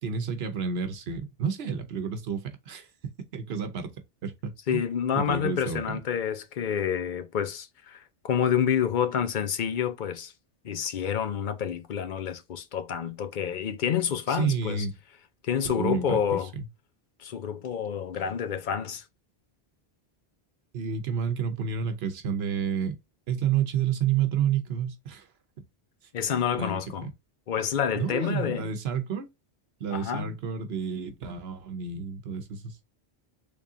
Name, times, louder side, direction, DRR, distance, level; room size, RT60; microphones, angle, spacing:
voice 1, 0.0-2.9 3.3-3.9 4.2-4.8 5.1-6.0 14.3-14.9 15.6-16.7 20.7-22.9 23.3-25.3 26.6-27.1 28.0-29.3 29.8-32.8, right 7 dB, 80° right, 1.0 m, -30 dB
voice 2, 4.7-10.3 10.6-14.9 15.4-16.5 17.2-19.0 26.1-27.1 27.5-28.7 29.9-30.3, left 8 dB, 55° left, 0.8 m, -28 dB
3.6 x 3.3 x 2.6 m
omnidirectional pair, 1.0 m